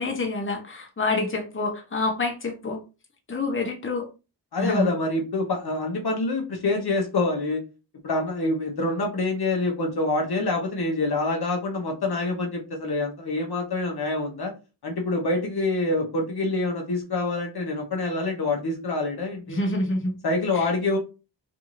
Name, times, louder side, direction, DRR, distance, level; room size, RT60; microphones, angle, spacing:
voice 1, 0.0-2.8 3.3-4.1 4.6-4.9 19.5-20.2 20.5-20.7, left 2 dB, 30° left, 2 dB, 0.8 m, -27 dB
voice 2, 4.5-7.6 8.0-14.5 14.8-19.6 20.2-21.0, left 2 dB, 60° left, 1 dB, 0.7 m, -26 dB
2.6 x 2.5 x 3.0 m, 0.30 s
wide cardioid pair, 90°, 44 cm